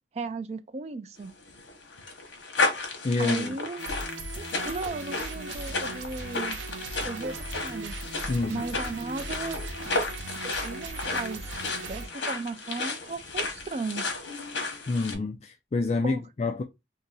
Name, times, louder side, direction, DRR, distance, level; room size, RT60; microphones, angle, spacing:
voice 1, 0.1-1.3 3.2-3.8 4.3-6.6 7.0-8.0 8.5-9.6 10.4-11.5 11.8-14.1 16.0-16.2, right 3 dB, 35° right, 0.4 m, -36 dB
sound 1, 1.3-15.1, left 3 dB, 85° left, 1.0 m, -33 dB
voice 2, 3.0-3.5 8.3-8.6 14.9-16.6, left 3 dB, 35° left, 0.3 m, -28 dB
sound 2, 3.8-12.1, right 2 dB, 85° right, 0.7 m, -38 dB
2.7 x 2.7 x 3.9 m
head